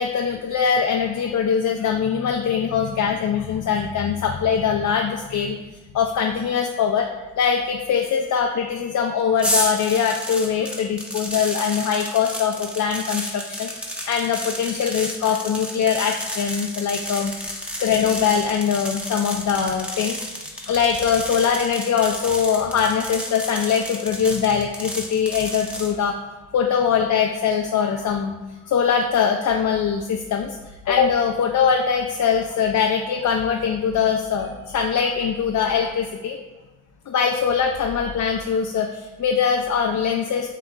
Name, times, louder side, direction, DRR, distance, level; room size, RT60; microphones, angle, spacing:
voice 1, 0.0-5.6 5.9-7.1 7.4-26.2 26.5-28.4 28.6-30.6 30.9-36.4 37.1-40.5, left 7 dB, 60° left, 2 dB, 0.5 m, -22 dB
sound 1, 9.4-25.9, equal, 5° right, 0.9 m, -31 dB
7.3 x 2.8 x 2.3 m, 1.2 s
cardioid pair, 65°, 33 cm